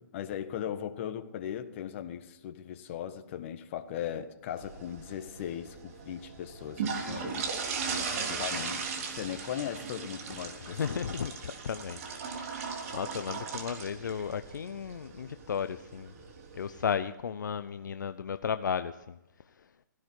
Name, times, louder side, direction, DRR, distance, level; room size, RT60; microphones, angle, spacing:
voice 1, 0.0-7.6 8.3-11.0, left 10 dB, 35° left, 1.4 m, -38 dB
sound 1, 4.6-16.9, right 5 dB, 45° right, 3.2 m, -38 dB
voice 2, 7.9-8.4 10.6-12.0 12.3-16.1 16.5-19.2, left 7 dB, 65° left, 0.7 m, -35 dB
17.0 x 15.5 x 4.7 m
hypercardioid pair, 140°, 11 cm